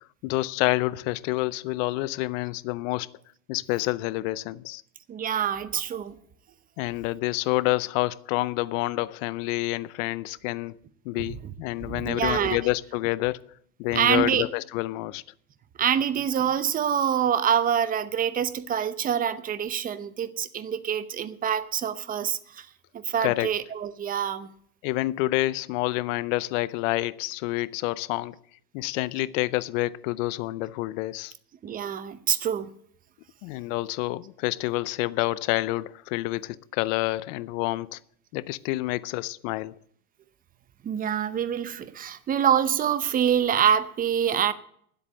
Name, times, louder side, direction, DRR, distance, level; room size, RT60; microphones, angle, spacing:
voice 1, 0.2-3.1 3.5-4.8 6.8-10.8 11.0-13.5 13.8-15.2 23.2-23.5 24.8-28.4 28.7-31.3 33.4-38.0 38.3-39.7, left 19 dB, 55° left, 0.7 m, -28 dB
voice 2, 5.1-6.2 11.3-11.5 11.8-12.6 13.9-14.4 15.8-22.7 22.9-24.5 31.6-32.7 40.8-44.5, right 8 dB, 20° right, 0.7 m, -26 dB
10.5 x 8.1 x 9.7 m
supercardioid pair, 135°, 47 cm